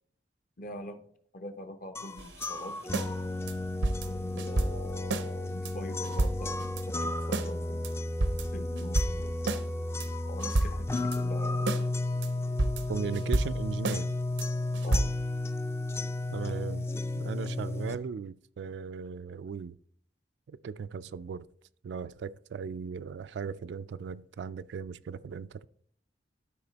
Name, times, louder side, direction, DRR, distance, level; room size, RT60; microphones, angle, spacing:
voice 1, 0.6-1.0 1.3-2.8 4.1-7.9 8.5-9.4 10.3-11.7 14.8-15.1, left 1 dB, 50° left, 0.7 m, -43 dB
sound 1, 1.9-17.9, left 2 dB, 15° left, 0.3 m, -33 dB
sound 2, 2.2-3.1 3.5-3.6 3.8-5.3 5.7-5.8 6.0-6.8 7.3-7.5 7.8-7.9 8.2-9.6 10.0-10.1 10.4-11.2 11.7-11.8 12.2-12.3 12.6-14.0 14.4-14.5 14.7-15.0, right 2 dB, 90° right, 0.7 m, -30 dB
voice 2, 12.9-14.1 16.3-16.8 17.1-19.8 20.5-21.5 21.8-25.7, right 6 dB, 70° right, 0.3 m, -37 dB
12.0 x 4.9 x 4.0 m
head